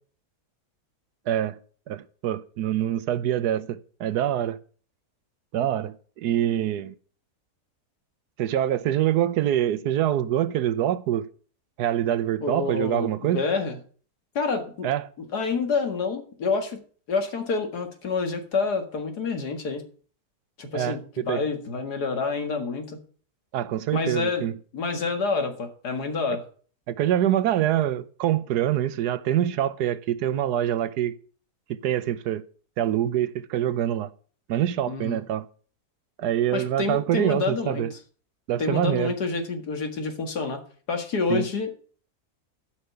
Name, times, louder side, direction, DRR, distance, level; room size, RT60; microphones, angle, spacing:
voice 1, 1.3-1.6 1.9-4.6 5.5-6.9 8.4-11.3 11.8-13.4 14.8-15.1 20.7-21.4 23.5-24.6 26.9-31.1 31.7-32.4 32.8-34.1 34.5-35.4 36.2-37.9 38.5-39.1 41.3-41.5, right 11 dB, 85° right, 1.3 m, -25 dB
voice 2, 12.4-13.8 14.4-14.9 15.3-16.8 17.1-19.8 20.6-21.0 21.3-23.0 23.9-24.4 24.7-26.4 34.9-35.2 36.5-37.9 38.6-40.6 40.9-41.7, left 4 dB, 85° left, 2.4 m, -28 dB
13.0 x 5.8 x 6.9 m
omnidirectional pair, 1.7 m